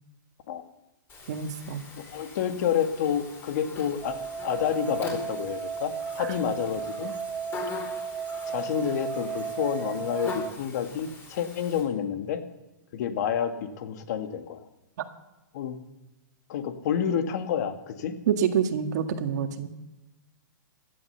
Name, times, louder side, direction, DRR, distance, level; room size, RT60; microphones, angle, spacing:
Buzz, 1.1-11.8, left 4 dB, 20° left, 4.7 m, -42 dB
voice 1, 1.3-1.8 6.2-6.3 18.3-19.7, right 8 dB, 55° right, 7 dB, 1.8 m, -27 dB
voice 2, 2.0-7.1 8.5-12.4 12.9-14.6 15.5-15.8 16.5-18.1, left 8 dB, 55° left, 7 dB, 2.0 m, -29 dB
sound 1, 4.0-10.5, right 6 dB, 15° right, 0.5 m, -34 dB
16.0 x 12.0 x 6.9 m, 1.0 s
hypercardioid pair, 145°, 11 cm